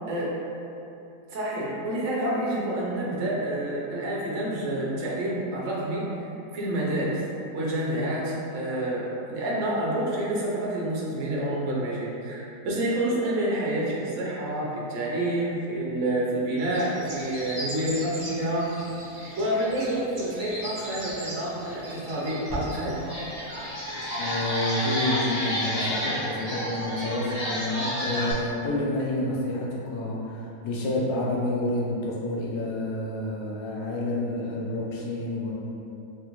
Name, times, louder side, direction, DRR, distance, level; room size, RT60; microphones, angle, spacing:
voice 1, 1.3-6.0 6.5-7.2 7.5-18.7 19.4-23.0, right 1 dB, 60° right, -5 dB, 0.8 m, -28 dB
sound 1, 16.6-24.5, equal, 45° right, 1.2 m, -40 dB
sound 2, 22.5-22.6 23.0-28.3, equal, 30° left, 0.7 m, -30 dB
voice 2, 24.2-35.5, left 1 dB, 70° left, -4 dB, 1.0 m, -29 dB
3.4 x 2.5 x 3.0 m, 2.8 s
omnidirectional pair, 1.7 m